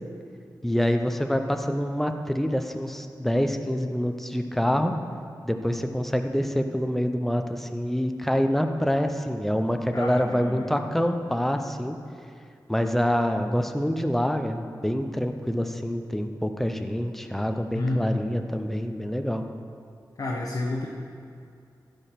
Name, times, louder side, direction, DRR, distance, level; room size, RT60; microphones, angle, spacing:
voice 1, 0.6-4.9 5.4-12.0 12.7-19.5, equal, 5° left, 6 dB, 0.6 m, -26 dB
voice 2, 9.9-10.7 17.7-18.2 20.2-20.9, left 2 dB, 55° left, -2 dB, 1.0 m, -29 dB
15.5 x 5.2 x 5.8 m, 2.4 s
wide cardioid pair, 120°, 7 cm